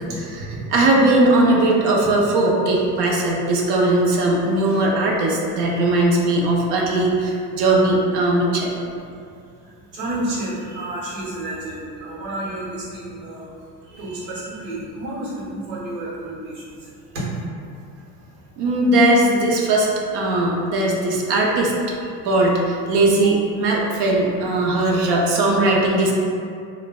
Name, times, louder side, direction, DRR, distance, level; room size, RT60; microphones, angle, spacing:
voice 1, 0.1-0.6 5.7-5.8 9.2-9.3 9.6-13.5 13.8-17.4 22.0-22.1 23.7-23.8, right 1 dB, 75° right, -7 dB, 1.1 m, -31 dB
voice 2, 0.7-8.7 18.6-19.9 20.1-21.7 22.2-26.1, right 2 dB, 60° right, -2 dB, 0.6 m, -19 dB
3.1 x 2.1 x 2.2 m, 2.4 s
supercardioid pair, 90°, 47 cm